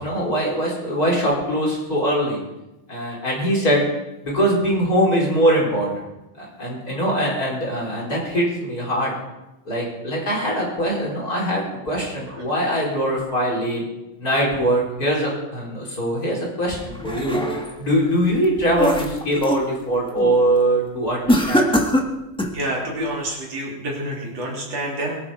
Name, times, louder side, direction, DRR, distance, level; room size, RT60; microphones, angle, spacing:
voice 1, 0.0-2.4 2.9-3.8 4.2-6.0 6.4-9.1 9.7-13.8 14.2-17.4 17.8-21.7, right 1 dB, 30° left, -3 dB, 4.8 m, -22 dB
sound 1, 16.7-17.8 18.3-19.7 20.1-20.4 21.3-22.6, equal, 5° left, 0.7 m, -23 dB
voice 2, 22.5-25.2, right 1 dB, 60° right, -2 dB, 4.2 m, -28 dB
22.5 x 11.5 x 5.0 m, 0.99 s
omnidirectional pair, 3.3 m